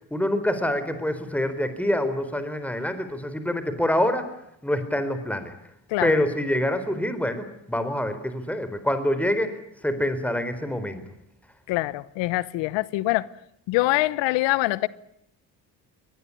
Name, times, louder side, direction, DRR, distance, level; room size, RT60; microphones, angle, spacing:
voice 1, 0.1-4.3 4.6-5.5 6.0-9.6 9.8-11.0, left 1 dB, 5° left, 4.2 m, -26 dB
voice 2, 5.9-6.2 11.7-13.3 13.7-14.9, left 19 dB, 80° left, 1.0 m, -24 dB
23.5 x 20.0 x 9.9 m
supercardioid pair, 65°, 43 cm